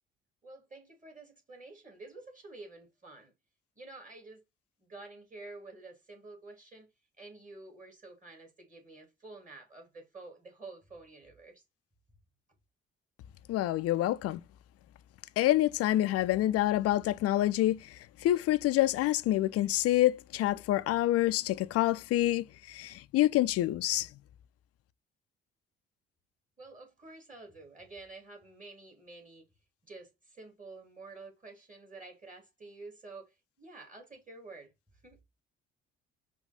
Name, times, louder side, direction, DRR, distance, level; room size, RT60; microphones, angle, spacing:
voice 1, 0.4-3.3 3.8-4.4 4.8-6.9 7.2-11.6 26.6-29.5 29.8-34.7 35.0-35.2, right 3 dB, 25° right, 2.3 m, -50 dB
voice 2, 13.5-14.4 15.4-17.9 18.2-24.1, left 14 dB, 45° left, 0.4 m, -27 dB
4.9 x 2.3 x 4.1 m
figure-of-eight pair, 45°, 33 cm